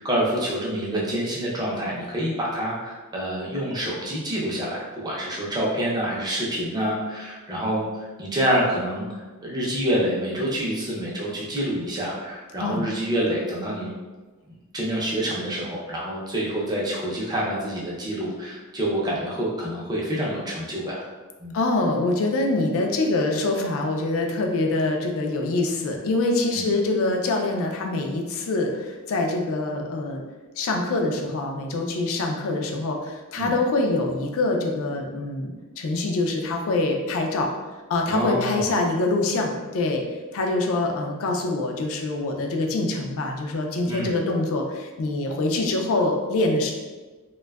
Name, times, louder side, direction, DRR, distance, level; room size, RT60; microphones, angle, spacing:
voice 1, 0.0-9.1 9.4-13.9 14.7-21.0 21.4-21.5 26.5-26.7 33.4-33.5 38.1-38.7 43.9-44.1, equal, 20° right, -5 dB, 0.5 m, -27 dB
voice 2, 21.5-30.2 30.6-37.5 37.9-40.0 40.3-46.7, left 2 dB, 65° left, 2 dB, 0.4 m, -25 dB
2.6 x 2.2 x 2.2 m, 1.3 s
head